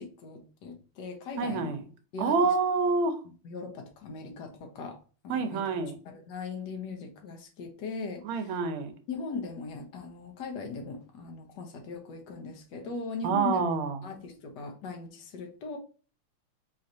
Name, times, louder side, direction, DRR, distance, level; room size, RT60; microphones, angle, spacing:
voice 1, 0.0-1.8 2.1-2.3 3.4-5.0 5.2-5.7 6.0-8.5 9.1-13.6 14.0-15.8, left 4 dB, 60° left, 1.3 m, -39 dB
voice 2, 1.4-1.8 2.2-3.2 5.3-6.0 8.2-8.9 13.2-14.0, right 4 dB, 75° right, 1.5 m, -27 dB
4.3 x 3.1 x 2.6 m
omnidirectional pair, 2.4 m